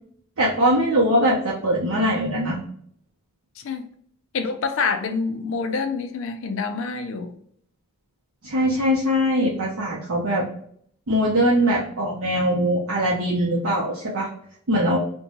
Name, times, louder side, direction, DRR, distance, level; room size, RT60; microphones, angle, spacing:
voice 1, 0.4-2.6 8.4-10.4 11.1-14.3 14.7-15.0, equal, 70° right, 0.7 m, -21 dB
voice 2, 3.6-3.9 4.3-7.3, left 4 dB, 60° left, 0.4 m, -27 dB
2.6 x 2.2 x 3.0 m
head